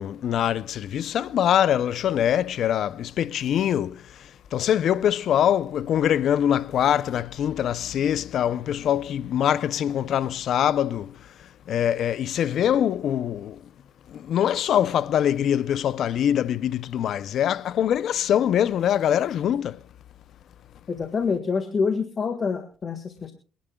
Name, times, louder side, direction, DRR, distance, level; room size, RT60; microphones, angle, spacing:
voice 1, 0.0-4.0 4.5-11.1 11.7-13.6 14.1-19.8, left 10 dB, 65° left, 0.5 m, -23 dB
voice 2, 20.9-23.3, left 5 dB, 40° left, 1.6 m, -26 dB
27.5 x 11.5 x 2.3 m
cardioid pair, 85°, 0 cm